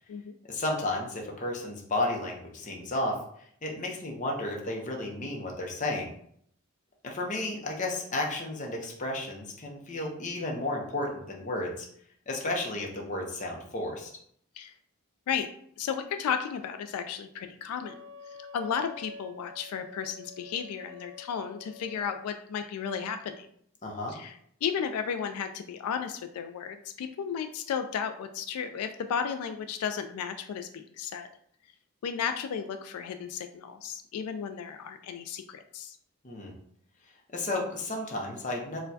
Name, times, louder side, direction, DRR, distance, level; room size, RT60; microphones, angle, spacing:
voice 1, 0.5-3.2 3.6-6.1 7.0-11.9 12.3-14.1 23.8-24.1 36.2-36.5 37.3-38.8, left 2 dB, 35° left, 0 dB, 0.6 m, -32 dB
voice 2, 15.8-18.0 18.3-23.5 24.1-31.3 32.0-36.0, left 7 dB, 90° left, 12 dB, 0.3 m, -34 dB
Wind instrument woodwind instrument, 17.8-22.3, left 4 dB, 55° right, 0.5 m, -48 dB
4.3 x 2.2 x 2.6 m, 0.67 s
head